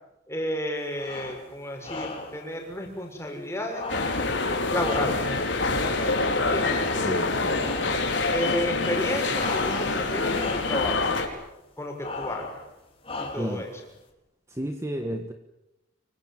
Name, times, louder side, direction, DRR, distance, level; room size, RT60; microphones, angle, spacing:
voice 1, 0.3-3.9 4.7-5.2 6.3-6.8 8.3-11.1 11.8-12.6 13.2-13.7, left 1 dB, 15° left, 2 dB, 6.3 m, -31 dB
sound 1, 0.9-1.5 1.8-2.4 3.7-5.5 6.6-7.3 7.6-8.1 9.3-10.0 10.3-10.9 12.0-12.6 13.0-13.6, left 3 dB, 30° left, 4.6 m, -36 dB
sound 2, 3.9-11.3, left 3 dB, 75° left, 4.9 m, -26 dB
voice 2, 7.0-8.1 13.4-13.6 14.5-15.3, equal, 15° right, 5 dB, 1.6 m, -33 dB
26.0 x 25.0 x 7.5 m, 0.92 s
head